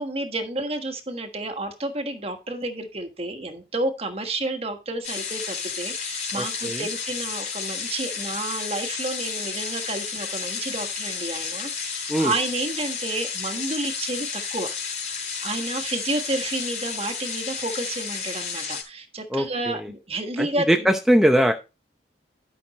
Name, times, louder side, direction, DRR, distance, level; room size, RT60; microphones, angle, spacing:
voice 1, 0.0-14.7 15.4-20.9, right 2 dB, 35° right, 6 dB, 1.4 m, -30 dB
sound 1, 5.0-18.8, left 6 dB, 45° left, 4.1 m, -32 dB
voice 2, 6.4-6.9 12.1-12.3 19.3-19.9 20.4-21.5, equal, ahead, 4 dB, 0.7 m, -21 dB
12.0 x 6.1 x 4.2 m, 0.28 s
head